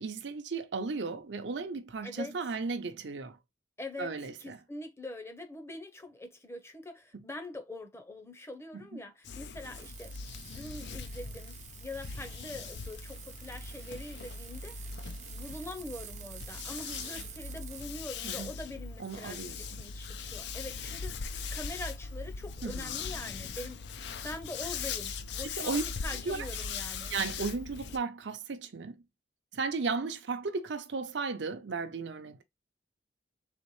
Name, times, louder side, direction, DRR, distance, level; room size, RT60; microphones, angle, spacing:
voice 1, 0.0-3.4 4.0-4.6 8.9-9.0 18.2-18.5 19.0-19.7 22.6-22.9 25.4-25.8 26.3-26.5 27.1-29.0 29.5-32.4, right 4 dB, 80° right, 0.6 m, -35 dB
voice 2, 2.0-2.6 3.8-10.1 10.5-14.9 15.3-21.2 21.5-27.1, left 2 dB, 15° left, 0.7 m, -44 dB
sound 1, 9.2-28.0, left 5 dB, 70° left, 0.5 m, -40 dB
sound 2, 9.7-17.9, right 12 dB, 40° right, 0.4 m, -50 dB
4.1 x 3.5 x 3.1 m
head